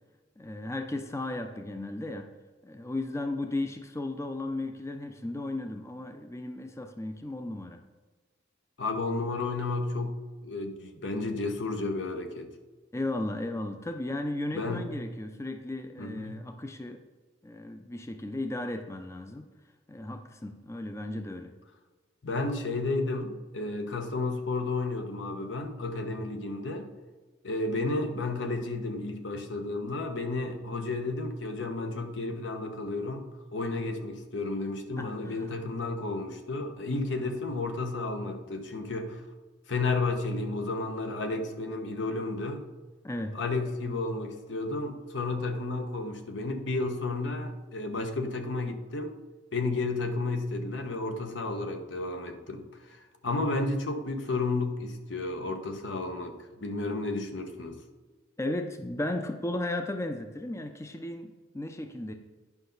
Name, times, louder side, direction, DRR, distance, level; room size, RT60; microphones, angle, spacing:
voice 1, 0.4-2.3 2.6-7.8 12.9-17.0 17.4-19.5 19.9-21.5 35.0-35.4 43.0-43.4 58.4-62.1, left 2 dB, 15° left, 6 dB, 0.5 m, -35 dB
voice 2, 8.8-12.5 14.5-14.9 16.0-16.4 22.2-26.9 27.4-39.2 39.7-42.7 43.3-49.1 49.5-57.8, left 3 dB, 80° left, 5 dB, 1.0 m, -32 dB
9.8 x 5.5 x 4.0 m, 1.3 s
head